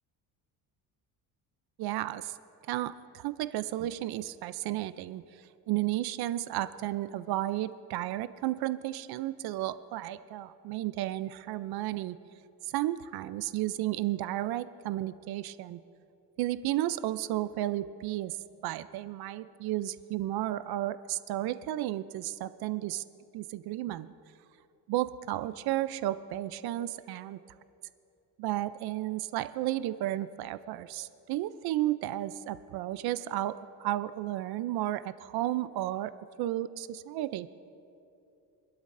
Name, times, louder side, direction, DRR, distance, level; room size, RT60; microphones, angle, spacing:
voice 1, 1.8-2.4 2.7-5.2 5.7-12.2 12.6-15.8 16.4-18.4 18.6-23.0 23.3-24.1 24.9-27.4 28.4-36.1 36.4-37.5, right 14 dB, 70° right, 14 dB, 0.5 m, -33 dB
26.5 x 12.5 x 2.6 m, 2.7 s
cardioid pair, 140°, 39 cm